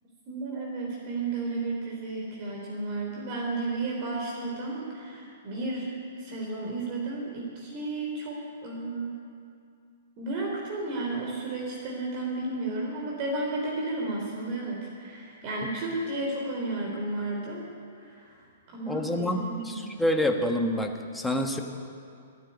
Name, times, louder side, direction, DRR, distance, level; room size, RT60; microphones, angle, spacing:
voice 1, 0.3-9.2 10.2-17.6 18.0-18.4 18.7-19.8, right 2 dB, 40° right, -2 dB, 3.3 m, -33 dB
voice 2, 18.9-21.6, left 1 dB, 5° left, 3 dB, 1.4 m, -27 dB
14.5 x 9.0 x 9.7 m, 2.4 s
figure-of-eight pair, 115°, 0 cm